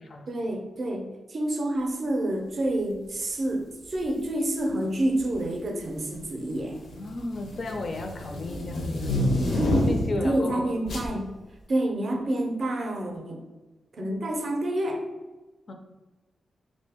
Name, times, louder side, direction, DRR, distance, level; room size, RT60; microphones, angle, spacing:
voice 1, 0.3-6.8 9.6-11.3 11.7-13.4 13.9-15.0, right 1 dB, 40° right, 3 dB, 0.5 m, -28 dB
sound 1, 3.9-4.2 5.2-5.6 6.0-10.3 10.9-11.1, left 1 dB, 80° left, 0.6 m, -28 dB
voice 2, 6.9-9.1 9.9-10.7 15.7-15.8, left 2 dB, 40° left, 4 dB, 0.4 m, -34 dB
3.2 x 2.6 x 3.4 m, 1.2 s
wide cardioid pair, 165°, 0 cm